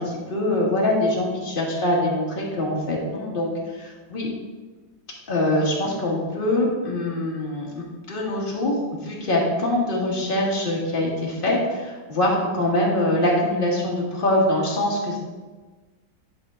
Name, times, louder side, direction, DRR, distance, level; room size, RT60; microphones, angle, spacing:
voice 1, 0.0-4.3 5.3-8.7 9.0-15.2, left 1 dB, 30° left, -3 dB, 1.6 m, -24 dB
10.5 x 4.5 x 3.7 m, 1.3 s
omnidirectional pair, 2.0 m